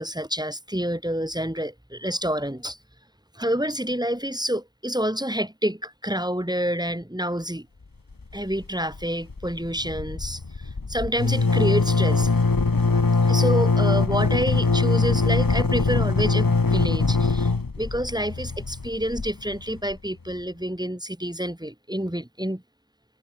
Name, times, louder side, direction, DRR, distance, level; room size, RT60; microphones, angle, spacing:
voice 1, 0.0-2.8 3.3-7.7 8.3-10.4 10.9-12.3 13.2-17.5 17.8-22.6, equal, 10° right, 4.1 m, -28 dB
sound 1, 8.1-8.6 8.9-9.0 9.3-20.0, left 3 dB, 75° left, 2.8 m, -22 dB
wide cardioid pair, 50°, 34 cm